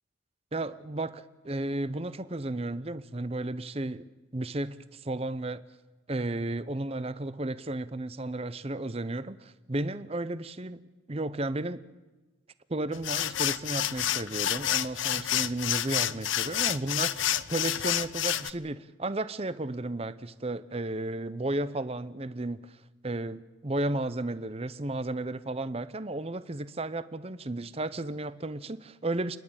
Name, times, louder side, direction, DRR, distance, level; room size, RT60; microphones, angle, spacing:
voice 1, 0.5-4.0 4.3-5.6 6.1-10.8 11.1-11.8 12.7-22.8 23.0-29.4, right 2 dB, 30° right, 0.8 m, -33 dB
sound 1, 12.9-18.5, left 11 dB, 75° left, 0.6 m, -29 dB
29.5 x 11.5 x 8.8 m
head